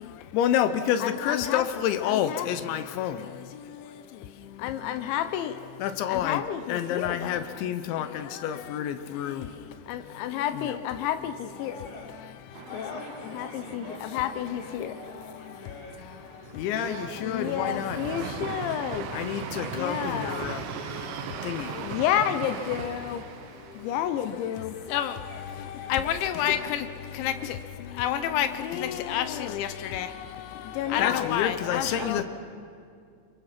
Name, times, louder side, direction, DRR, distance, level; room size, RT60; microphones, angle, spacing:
voice 1, 0.3-3.1 4.6-5.5 5.8-8.1 8.4-9.4 10.2-11.1 11.6-11.7 13.7-13.8 14.1-14.9 16.6-17.0 17.2-20.6 21.5-21.6 21.9-23.2 23.9-25.1 25.9-26.8 27.2-27.3 28.0-30.1 30.8-32.2, left 10 dB, 80° left, 10 dB, 3.1 m, -28 dB
voice 2, 11.5-12.2 12.7-16.0 25.3-26.6 30.6-32.2, left 2 dB, 60° left, -2 dB, 5.7 m, -45 dB
sound 1, 12.5-26.3 26.6-26.7 27.1-27.6, right 7 dB, 85° right, 3.5 m, -40 dB
voice 3, 16.7-18.3 19.5-21.3 22.2-22.7 31.9-32.2, right 5 dB, 65° right, 2 dB, 3.4 m, -40 dB
28.5 x 23.0 x 5.9 m, 2.3 s
omnidirectional pair, 5.3 m